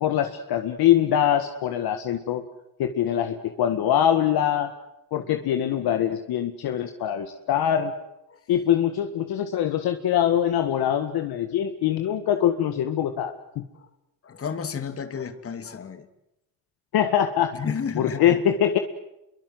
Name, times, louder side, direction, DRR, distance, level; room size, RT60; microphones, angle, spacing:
voice 1, 0.0-2.4 2.8-4.7 5.1-7.9 8.5-13.6 16.9-17.6 18.0-18.8, left 10 dB, 60° left, 7 dB, 1.9 m, -23 dB
voice 2, 14.2-16.1 17.5-18.4, left 6 dB, 35° left, 10 dB, 2.6 m, -32 dB
29.0 x 23.5 x 7.9 m, 0.89 s
cardioid pair, 120°, 42 cm